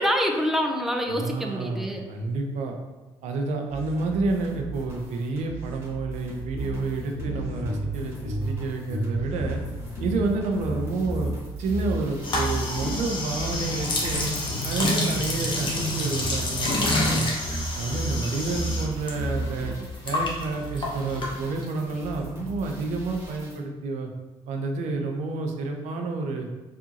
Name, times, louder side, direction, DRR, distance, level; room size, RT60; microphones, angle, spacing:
voice 1, 0.0-2.1, equal, 5° right, 2 dB, 0.6 m, -26 dB
voice 2, 1.1-2.7 3.2-9.6 10.0-11.3 11.6-14.3 14.6-17.3 17.8-19.7 20.0-24.1 24.5-26.5, right 3 dB, 80° right, 3 dB, 0.7 m, -29 dB
sound 1, 3.7-23.6, right 2 dB, 20° right, 1.4 m, -41 dB
sound 2, 6.5-11.4 11.7-18.9 19.2-19.8, right 1 dB, 75° left, 1.0 m, -32 dB
sound 3, 12.2-19.1 19.4-21.8, left 2 dB, 40° left, 1.0 m, -28 dB
4.7 x 2.6 x 2.9 m, 1.2 s
supercardioid pair, 70°, 12 cm